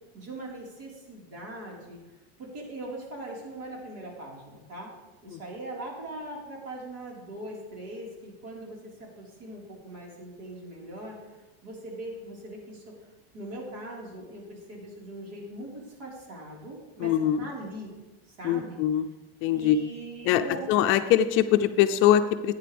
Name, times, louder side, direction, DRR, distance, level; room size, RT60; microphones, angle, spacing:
voice 1, 0.1-2.0 2.4-4.9 5.2-11.4 11.6-12.8 13.3-17.1 17.4-17.9 18.3-18.8 19.5-20.9, right 1 dB, 60° right, -3 dB, 4.5 m, -41 dB
voice 2, 17.0-17.4 18.4-19.1 19.4-19.8 20.2-22.5, left 11 dB, 45° left, 8 dB, 0.6 m, -23 dB
15.0 x 9.5 x 3.5 m, 1.1 s
supercardioid pair, 145°, 30 cm